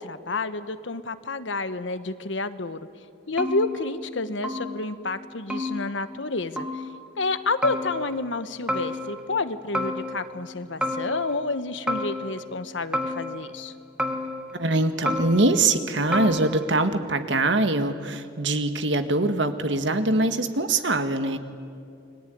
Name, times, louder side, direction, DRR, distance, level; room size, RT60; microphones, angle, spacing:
voice 1, 0.0-2.9 3.3-6.7 7.2-13.7, left 3 dB, 85° left, 11 dB, 1.3 m, -29 dB
sound 1, 3.4-4.2 4.4-5.0 5.5-6.3 6.6-7.2 7.6-8.4 8.7-9.4 9.7-10.5 10.8-11.6 11.9-12.6 12.9-13.7 14.0-14.7 15.0-15.8 16.1-16.9, left 1 dB, 5° right, 1.7 m, -31 dB
voice 2, 14.5-21.4, right 2 dB, 80° right, 8 dB, 1.8 m, -23 dB
29.5 x 21.5 x 9.4 m, 2.4 s
head